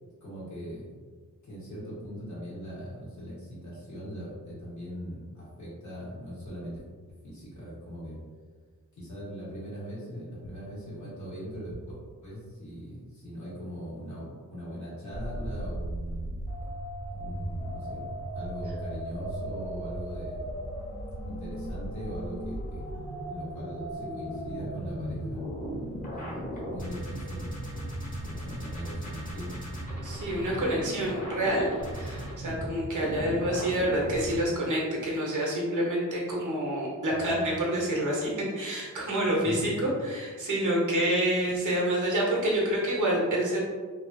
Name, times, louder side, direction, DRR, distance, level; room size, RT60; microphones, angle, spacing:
voice 1, 0.2-0.9 1.4-6.8 7.2-8.2 8.9-11.8 12.2-16.4 17.1-18.0 18.3-20.5 21.3-22.8 23.3-25.4 26.1-27.5 28.2-29.6 37.1-37.5 39.4-39.8 41.4-41.5, equal, 60° left, -8 dB, 1.4 m, -40 dB
sound 1, 15.1-34.4, right 1 dB, 25° left, 0.9 m, -36 dB
voice 2, 30.0-31.7 31.9-38.3 38.5-43.6, right 1 dB, 65° right, -3 dB, 1.0 m, -28 dB
3.0 x 2.4 x 2.6 m, 1.5 s
wide cardioid pair, 90°, 33 cm